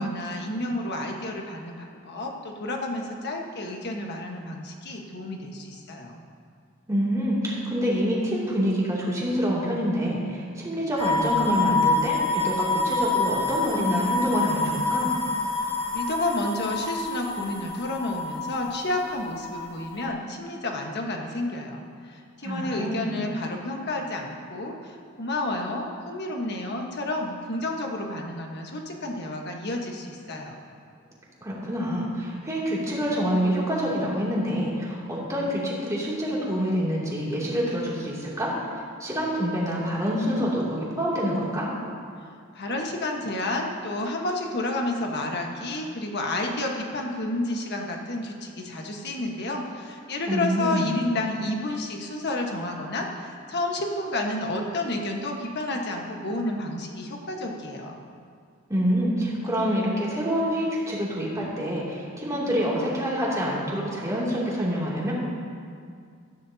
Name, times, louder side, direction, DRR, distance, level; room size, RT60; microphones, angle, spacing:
voice 1, 0.0-6.2 15.6-30.6 42.5-58.0, left 2 dB, 50° left, 1 dB, 1.4 m, -30 dB
voice 2, 6.9-15.1 22.4-23.1 31.4-38.6 39.0-41.7 50.3-50.9 58.7-65.1, equal, 15° right, -6 dB, 2.8 m, -26 dB
sound 1, 11.0-20.1, left 3 dB, 25° left, 1.6 m, -27 dB
17.0 x 13.5 x 2.9 m, 2.2 s
head